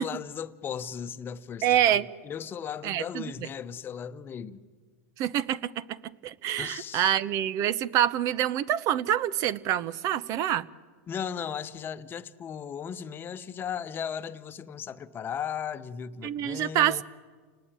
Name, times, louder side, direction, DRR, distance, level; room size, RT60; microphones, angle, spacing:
voice 1, 0.0-4.6 6.6-7.1 11.1-17.0, left 8 dB, 30° left, 1.0 m, -36 dB
voice 2, 1.6-2.1 2.8-3.5 5.2-6.0 6.2-10.7 16.2-17.0, right 11 dB, 45° right, 0.9 m, -26 dB
29.5 x 19.5 x 9.0 m
supercardioid pair, 120°, 8 cm